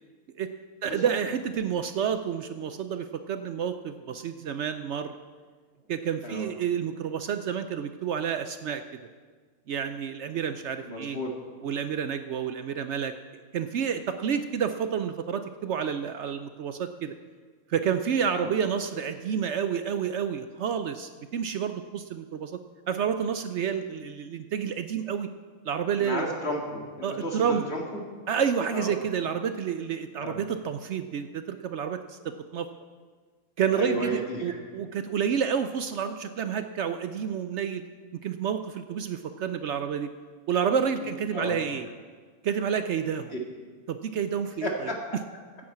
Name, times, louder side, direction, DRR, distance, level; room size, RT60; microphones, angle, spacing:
voice 1, 0.8-5.1 5.9-9.0 9.7-11.2 11.6-13.1 13.5-17.1 17.7-22.6 22.9-25.3 25.6-26.2 27.0-27.6 28.3-32.7 33.6-37.8 38.1-40.1 40.5-41.9 42.4-43.4 43.9-44.9, right 7 dB, 65° right, 9 dB, 0.7 m, -29 dB
voice 2, 10.8-11.3 18.4-18.5 26.0-28.0 28.7-28.9 30.2-30.4 33.7-34.6 41.0-41.6 43.3-43.4 44.6-45.0, equal, 45° left, 0 dB, 2.4 m, -33 dB
10.5 x 8.7 x 8.4 m, 1.5 s
omnidirectional pair, 1.6 m